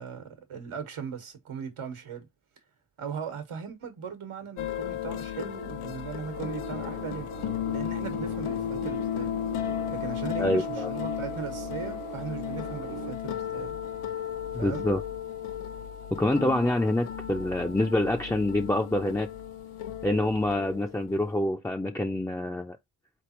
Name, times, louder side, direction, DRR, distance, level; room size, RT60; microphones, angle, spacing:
voice 1, 0.0-2.3 3.0-7.3 7.7-9.3 9.9-13.7 14.5-14.8, right 6 dB, 85° right, 1.3 m, -38 dB
sound 1, 4.6-21.4, left 10 dB, 90° left, 0.6 m, -35 dB
sound 2, 6.3-13.1, right 11 dB, 45° right, 0.6 m, -41 dB
voice 2, 10.4-10.9 14.5-15.0 16.1-19.3 20.0-22.8, left 1 dB, 5° left, 0.3 m, -26 dB
4.1 x 3.5 x 2.9 m
wide cardioid pair, 70°, 49 cm